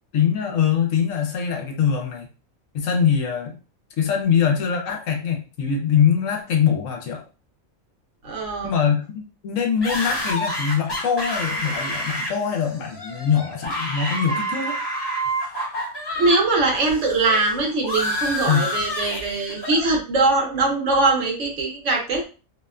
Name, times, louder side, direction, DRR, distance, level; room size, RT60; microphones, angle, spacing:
voice 1, 0.1-2.3 2.7-3.5 4.0-7.2 8.6-14.8 18.5-18.7, left 7 dB, 75° left, 3 dB, 1.0 m, -23 dB
voice 2, 8.2-8.7 16.2-22.2, right 3 dB, 65° right, 0 dB, 1.0 m, -21 dB
sound 1, 9.8-16.4 16.7-19.9, equal, 20° left, 0.7 m, -28 dB
2.8 x 2.1 x 2.3 m, 0.34 s
omnidirectional pair, 1.4 m